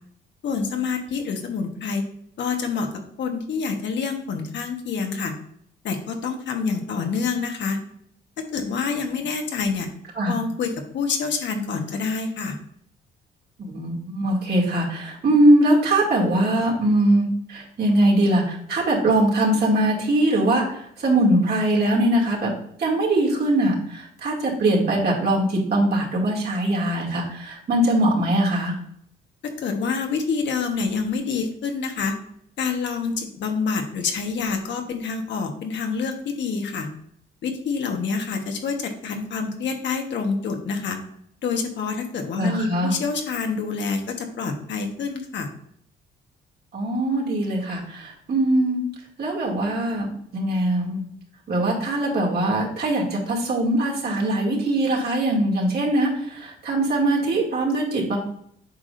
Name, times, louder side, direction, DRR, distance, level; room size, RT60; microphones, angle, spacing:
voice 1, 0.4-2.0 2.4-2.9 3.2-5.3 5.8-7.8 8.5-9.9 10.3-12.6 29.6-32.1 32.6-36.9 37.4-41.0 41.4-45.5, left 5 dB, 65° left, 4 dB, 1.2 m, -27 dB
voice 2, 13.6-22.5 22.8-28.8 42.4-42.9 46.7-48.8 49.2-51.0 51.5-58.2, right 1 dB, 55° right, -3 dB, 2.4 m, -21 dB
8.1 x 4.9 x 2.6 m, 0.69 s
cardioid pair, 90°, 20 cm